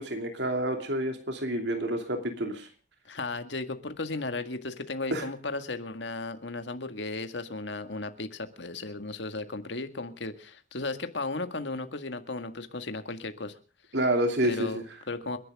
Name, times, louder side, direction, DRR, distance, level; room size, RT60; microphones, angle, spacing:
voice 1, 0.0-2.7 5.1-5.2 13.9-14.7, right 1 dB, 65° right, 4 dB, 2.7 m, -28 dB
voice 2, 3.1-13.6 14.4-15.4, left 3 dB, 75° left, 8 dB, 1.9 m, -35 dB
30.0 x 11.0 x 3.6 m, 0.35 s
head